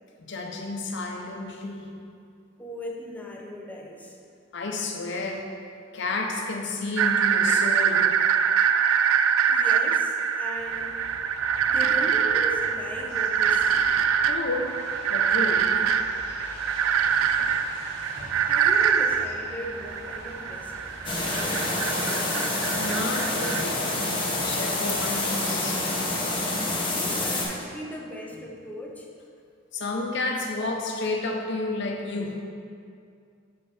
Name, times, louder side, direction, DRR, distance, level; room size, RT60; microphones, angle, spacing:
voice 1, 0.2-1.9 4.5-5.5 5.9-8.1 14.3-14.8 15.1-15.8 17.4-17.5 18.2-18.3 20.7-21.3 22.7-23.8 24.2-26.0 29.7-32.4, left 2 dB, 60° left, 2 dB, 0.8 m, -31 dB
voice 2, 2.6-4.2 9.5-11.0 11.7-13.9 18.3-22.5 26.9-29.1, equal, 10° left, -1 dB, 0.7 m, -38 dB
sound 1, 7.0-23.6, right 7 dB, 85° right, 0.3 m, -24 dB
sound 2, 10.5-21.5, equal, 60° right, 1.6 m, -43 dB
sound 3, 21.0-27.4, left 2 dB, 25° left, 1.2 m, -27 dB
6.7 x 5.2 x 4.3 m, 2.4 s
head